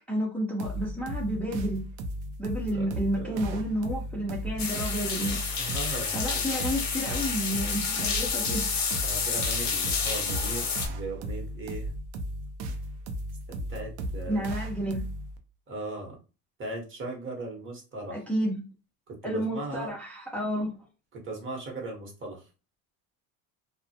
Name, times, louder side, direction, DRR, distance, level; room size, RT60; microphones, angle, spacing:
voice 1, 0.1-1.8 2.4-5.4 6.1-8.7 14.3-15.0 18.1-18.6 19.2-20.8, equal, 5° left, 0.6 m, -30 dB
sound 1, 0.6-15.4, equal, 65° right, 0.6 m, -36 dB
voice 2, 2.7-3.6 5.6-6.2 9.0-11.9 13.5-14.5 15.7-16.2 16.6-18.2 19.1-19.9 21.1-22.5, right 2 dB, 30° right, 1.0 m, -38 dB
sound 2, 4.6-10.9, left 5 dB, 45° left, 0.8 m, -30 dB
2.1 x 2.1 x 2.7 m
supercardioid pair, 100°, 40 cm